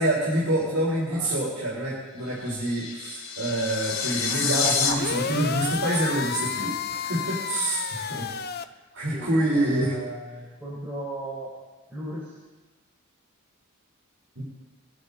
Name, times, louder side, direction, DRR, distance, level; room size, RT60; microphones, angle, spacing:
voice 1, 0.0-8.3 8.9-10.0 14.4-14.5, right 1 dB, 75° right, -6 dB, 4.1 m, -26 dB
sound 1, 2.2-4.9, left 5 dB, 65° left, 2.9 m, -28 dB
sound 2, 4.9-8.7, left 7 dB, 45° left, 0.6 m, -31 dB
voice 2, 9.1-11.5 11.9-12.3, right 1 dB, 10° right, -10 dB, 5.2 m, -37 dB
22.5 x 11.0 x 4.1 m, 1.2 s
head